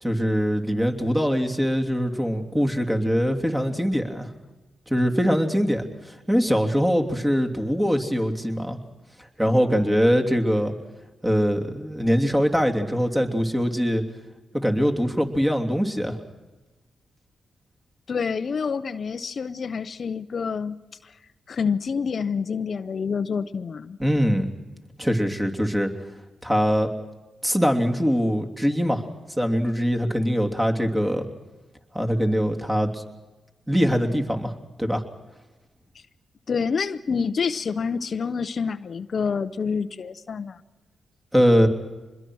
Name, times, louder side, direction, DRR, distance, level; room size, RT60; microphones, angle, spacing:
voice 1, 0.0-4.3 4.9-5.9 6.3-8.8 9.4-10.7 11.2-14.0 14.5-16.2 24.0-24.5 25.0-25.9 26.4-26.9 27.4-29.0 29.4-31.3 31.9-33.0 33.7-34.5 34.8-35.0 41.3-41.7, equal, 10° right, 3 dB, 3.0 m, -22 dB
voice 2, 18.1-20.8 21.0-21.1 21.5-24.0 36.5-40.6, left 5 dB, 55° left, 12 dB, 0.7 m, -27 dB
25.0 x 21.5 x 6.3 m, 1.2 s
supercardioid pair, 55°, 0 cm